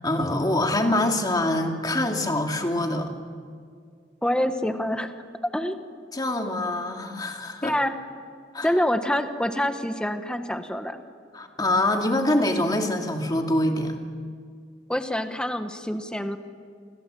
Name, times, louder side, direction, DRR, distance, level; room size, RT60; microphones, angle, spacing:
voice 1, 0.0-3.1 6.1-7.7 8.5-8.7 11.3-14.0, left 1 dB, 20° left, 3 dB, 2.6 m, -24 dB
voice 2, 4.2-5.2 5.5-5.8 7.6-7.9 8.6-11.0 14.9-16.4, left 1 dB, 5° left, 7 dB, 1.4 m, -26 dB
29.0 x 26.0 x 7.8 m, 2.1 s
head